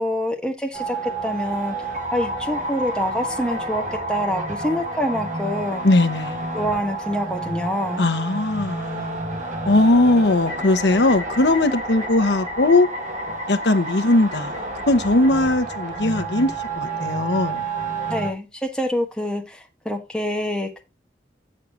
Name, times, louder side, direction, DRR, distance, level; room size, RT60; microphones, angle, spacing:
voice 1, 0.0-1.7 2.1-5.9 6.5-8.1 18.1-20.8, equal, 5° left, 1.4 m, -26 dB
sound 1, 0.7-18.3, right 2 dB, 45° right, 1.8 m, -30 dB
voice 2, 5.8-6.4 8.0-9.2 9.6-12.9 13.5-14.6 14.9-17.6, left 2 dB, 70° left, 1.0 m, -19 dB
7.5 x 6.6 x 3.9 m
head